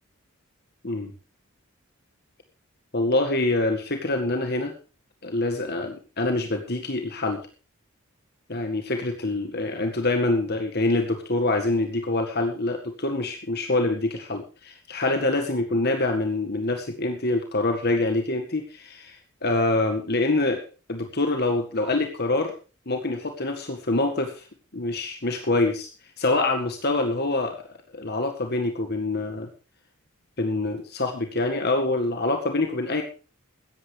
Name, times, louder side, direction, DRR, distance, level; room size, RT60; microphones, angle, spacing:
voice 1, 2.9-4.7 5.2-7.4 8.5-20.6 20.9-22.5 22.8-24.5 24.7-25.9 26.2-27.6 27.9-29.5 30.4-33.0, left 2 dB, 50° left, 5 dB, 1.9 m, -25 dB
17.0 x 14.5 x 3.4 m, 0.35 s
head